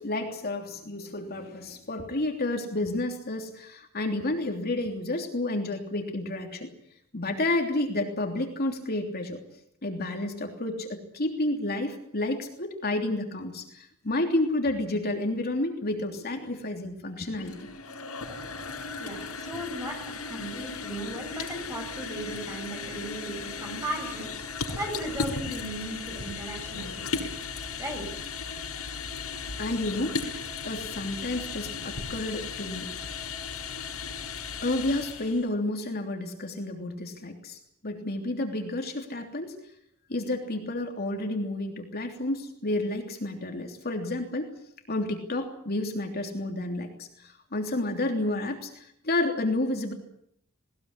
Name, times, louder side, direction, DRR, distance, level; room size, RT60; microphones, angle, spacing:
voice 1, 0.0-6.7 7.1-9.4 9.8-17.6 29.6-32.9 34.6-39.5 40.1-44.5 44.9-49.9, left 2 dB, 45° left, 3 dB, 3.2 m, -30 dB
sound 1, 17.2-35.5, left 4 dB, 85° left, 6.7 m, -36 dB
voice 2, 19.0-27.2 27.8-28.1, right 1 dB, 15° right, 3 dB, 7.4 m, -37 dB
20.0 x 20.0 x 9.8 m, 0.70 s
head